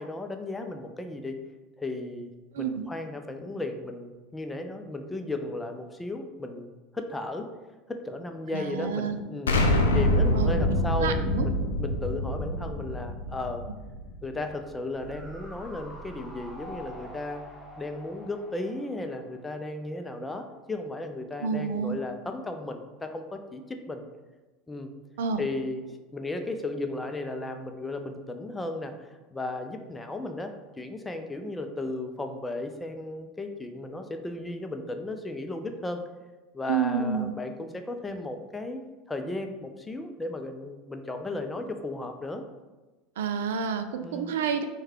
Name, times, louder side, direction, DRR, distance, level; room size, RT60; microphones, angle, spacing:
voice 1, 0.0-1.4 1.8-2.3 2.6-7.5 7.9-9.5 9.9-13.6 14.2-17.4 17.8-24.0 24.7-24.9 25.4-28.9 29.3-36.0 36.5-38.8 39.1-42.4 44.0-44.3, left 2 dB, 15° left, 5 dB, 0.5 m, -35 dB
voice 2, 2.5-2.8 8.5-9.2 10.3-11.5 21.4-22.0 25.2-25.4 36.7-37.3 43.2-44.6, right 6 dB, 70° right, 8 dB, 0.3 m, -29 dB
Explosion, 9.5-14.3, left 1 dB, 80° left, 0.5 m, -25 dB
sound 1, 14.9-20.2 20.5-20.6, equal, 5° right, 1.2 m, -46 dB
4.6 x 2.3 x 4.5 m, 1.2 s
figure-of-eight pair, 75°, 0 cm